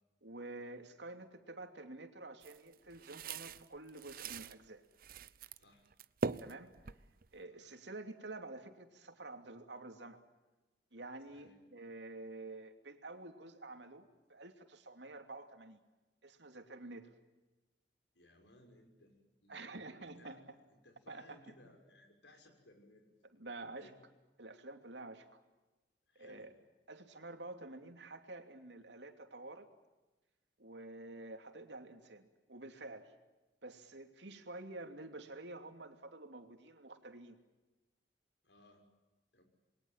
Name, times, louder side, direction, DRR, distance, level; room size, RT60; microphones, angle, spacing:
voice 1, 0.2-4.8 6.4-6.7 7.3-10.2 10.9-15.8 16.2-17.1 19.5-20.4 21.1-21.4 23.3-23.9 24.4-25.3 26.1-26.5 26.9-29.7 30.6-33.1 33.6-37.4, right 2 dB, 80° right, 6 dB, 2.8 m, -49 dB
sound 1, 2.4-4.5 5.0-5.6 5.9-7.4, right 4 dB, 55° right, 0.8 m, -42 dB
voice 2, 18.1-19.6 20.2-24.0 26.1-26.5 38.4-38.8 39.3-39.4, left 1 dB, 90° left, 5 dB, 6.2 m, -63 dB
28.0 x 22.5 x 7.4 m, 1.1 s
head